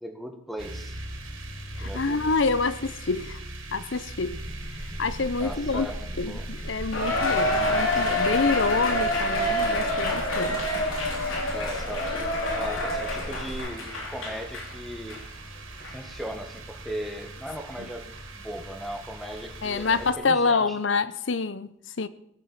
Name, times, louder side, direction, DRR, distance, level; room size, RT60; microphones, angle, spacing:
voice 1, 0.0-1.0 1.8-2.2 5.4-6.5 11.5-15.2 15.8-20.8, equal, ahead, 1.6 m, -38 dB
sound 1, 0.6-20.1, right 2 dB, 80° right, 3.5 m, -41 dB
voice 2, 1.7-3.4 3.7-4.4 5.0-5.9 6.2-10.8 17.8-17.9 19.6-22.1, left 4 dB, 60° left, 0.8 m, -27 dB
sound 2, 4.3-13.6, equal, 25° left, 2.1 m, -38 dB
Cheering, 6.9-14.7 15.1-15.2 15.8-15.9, left 1 dB, 75° left, 3.6 m, -27 dB
18.5 x 7.7 x 7.2 m
head